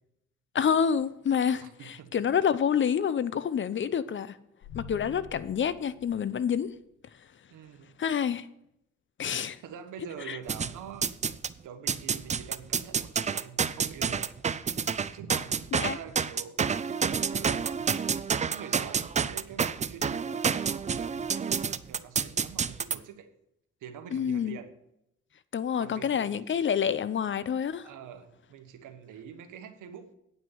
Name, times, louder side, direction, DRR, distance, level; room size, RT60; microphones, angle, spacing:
voice 1, 0.5-4.4 4.7-6.7 8.0-8.5 9.2-9.6 10.3-10.4 15.7-16.0 24.1-24.6 25.5-27.9, left 7 dB, 40° left, 0.6 m, -28 dB
voice 2, 1.6-2.1 7.5-8.0 9.6-11.1 11.6-14.3 15.1-18.2 18.5-23.3 23.8-24.7 25.8-26.3 27.8-30.1, right 8 dB, 85° right, 1.3 m, -45 dB
sound 1, 4.6-6.9, left 5 dB, 75° left, 1.1 m, -47 dB
sound 2, 10.5-11.5 11.9-23.0, right 6 dB, 25° right, 0.4 m, -29 dB
9.5 x 6.2 x 7.1 m
cardioid pair, 90°, 30 cm